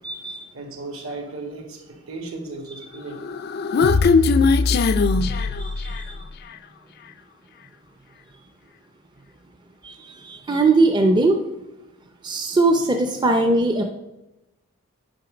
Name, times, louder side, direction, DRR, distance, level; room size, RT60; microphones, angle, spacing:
voice 1, 0.0-0.4 5.4-6.1 9.8-11.4 12.2-13.8, right 2 dB, 20° right, 4 dB, 0.5 m, -20 dB
voice 2, 0.5-3.2 3.8-3.9 5.1-5.6, right 2 dB, 70° right, 2 dB, 1.9 m, -36 dB
Human voice, 3.2-6.2, left 4 dB, 45° left, 0.3 m, -19 dB
8.8 x 5.5 x 5.0 m, 0.94 s
head